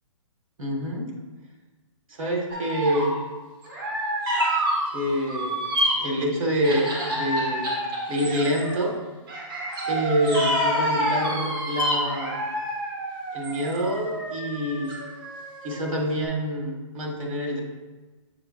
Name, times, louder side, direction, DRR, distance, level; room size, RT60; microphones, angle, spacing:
voice 1, 0.6-1.1 2.1-3.2 4.9-5.6 5.9-6.8 7.1-7.8 8.1-9.0 9.9-12.4 13.3-14.9 15.6-17.6, equal, 85° right, 0 dB, 1.8 m, -26 dB
sound 1, 2.5-3.2 3.6-6.1 6.6-8.8 9.3-15.9 16.2-16.3, equal, 40° right, 1.6 m, -28 dB
7.7 x 5.7 x 2.6 m, 1.2 s
hypercardioid pair, 170°, 17 cm